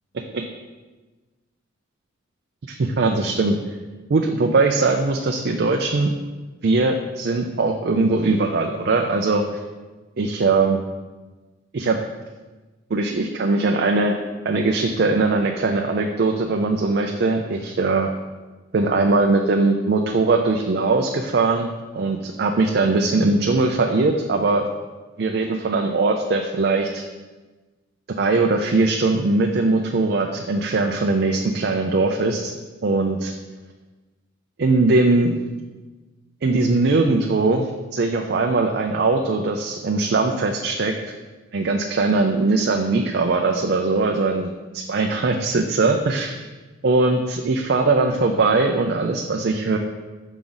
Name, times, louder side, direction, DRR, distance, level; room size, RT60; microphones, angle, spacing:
voice 1, 2.7-3.6 4.1-6.1 6.6-9.4 10.2-10.8 11.7-12.0 12.9-14.2 14.4-18.1 18.7-21.7 21.9-24.7 25.2-27.0 28.2-32.5 32.8-33.3 34.6-35.4 36.4-41.0 41.5-46.4 46.8-49.8, right 3 dB, 50° right, 3 dB, 0.4 m, -20 dB
7.1 x 4.9 x 3.9 m, 1.2 s
head